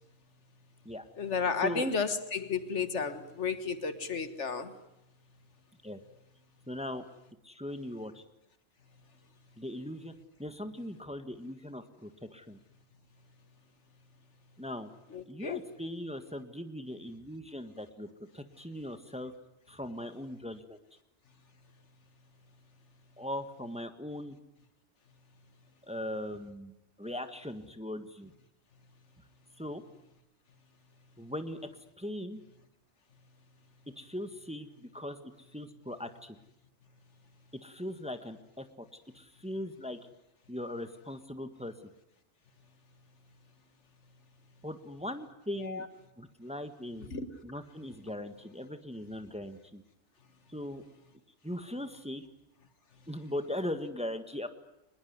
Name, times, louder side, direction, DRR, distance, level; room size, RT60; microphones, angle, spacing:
voice 1, 1.2-4.7 15.1-15.6 45.5-45.9 47.1-47.3, left 5 dB, 70° left, 11 dB, 1.8 m, -32 dB
voice 2, 6.7-7.0 7.4-8.2 9.6-10.1 10.4-12.6 14.6-14.9 15.3-18.1 18.3-19.3 19.7-20.8 23.2-24.4 25.8-28.3 29.6-29.8 31.2-31.7 32.0-32.4 34.0-35.2 35.5-36.4 37.5-38.9 39.1-40.0 40.5-41.7 44.6-45.8 46.2-47.1 47.4-49.8 50.5-50.8 51.4-52.2 53.1-54.5, left 1 dB, 5° right, 8 dB, 1.5 m, -39 dB
24.5 x 21.0 x 9.5 m, 0.86 s
omnidirectional pair, 1.2 m